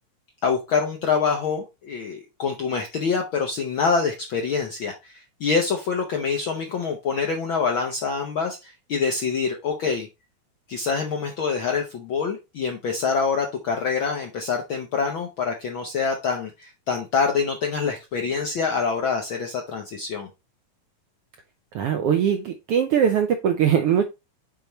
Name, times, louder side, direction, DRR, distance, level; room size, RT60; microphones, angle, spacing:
voice 1, 0.4-10.1 10.7-20.3, left 5 dB, 70° left, 3 dB, 1.2 m, -25 dB
voice 2, 21.7-24.0, right 8 dB, 80° right, 6 dB, 1.3 m, -21 dB
6.9 x 4.5 x 4.0 m, 0.25 s
omnidirectional pair, 3.4 m